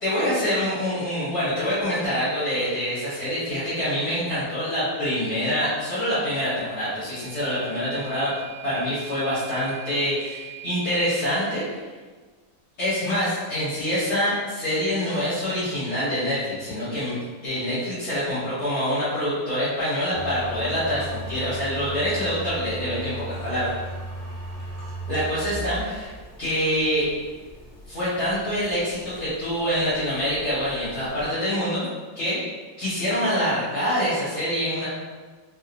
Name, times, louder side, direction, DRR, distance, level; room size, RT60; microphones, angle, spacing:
voice 1, 0.0-8.3 8.6-11.6 12.8-17.2 17.4-23.7 25.1-26.1 26.4-27.1 27.9-31.9 32.2-32.4 32.8-34.9, equal, 55° left, -13 dB, 1.7 m, -25 dB
Microwave oven / Alarm, 7.1-11.2, right 20 dB, 90° right, 0.7 m, -42 dB
sound 1, 20.1-31.3, right 1 dB, 75° left, 0.3 m, -37 dB
3.6 x 2.8 x 2.5 m, 1.4 s
omnidirectional pair, 2.0 m